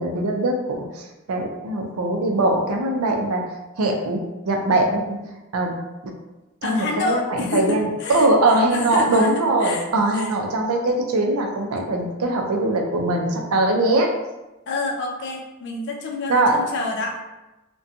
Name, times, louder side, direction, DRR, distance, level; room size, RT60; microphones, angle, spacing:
voice 1, 0.0-3.4 3.8-4.2 4.5-5.2 5.5-5.7 6.0-6.1 6.6-14.1 16.3-16.5, right 2 dB, 85° right, 2 dB, 0.5 m, -21 dB
voice 2, 6.6-8.3 8.7-9.3 9.6-9.9 10.1-10.3 14.7-17.2, left 3 dB, 55° left, 1 dB, 0.4 m, -28 dB
2.7 x 2.2 x 2.5 m, 1.0 s
head